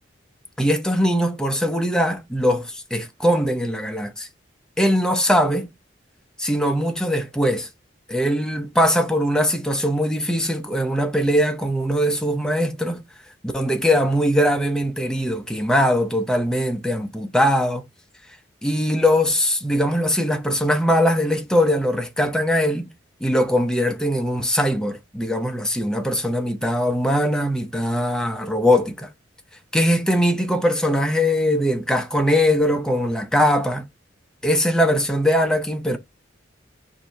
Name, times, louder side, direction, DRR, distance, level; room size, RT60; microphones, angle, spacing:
voice 1, 0.6-4.3 4.8-5.7 6.4-7.7 8.1-13.0 13.4-17.9 18.6-22.9 23.2-29.1 29.7-33.8 34.4-36.0, equal, 5° left, 0.7 m, -21 dB
4.6 x 2.7 x 3.3 m
head